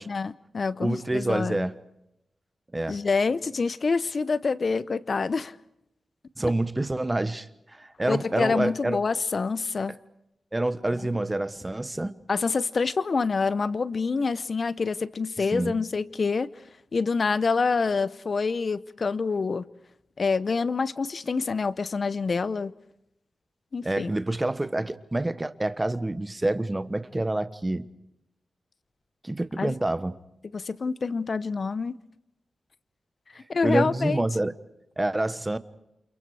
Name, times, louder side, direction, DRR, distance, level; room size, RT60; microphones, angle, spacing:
voice 1, 0.0-1.7 2.9-5.6 8.1-10.0 12.3-16.5 16.9-19.7 20.2-22.7 23.7-24.1 29.6-29.8 30.5-32.0 33.5-34.2, left 4 dB, 50° left, 0.8 m, -26 dB
voice 2, 0.8-1.8 2.7-3.0 6.4-9.0 9.9-10.0 10.5-12.2 15.5-15.8 23.8-27.9 29.2-30.2 33.6-34.5 35.0-35.6, right 2 dB, 15° right, 1.2 m, -27 dB
29.0 x 28.0 x 4.9 m
wide cardioid pair, 95°, 0 cm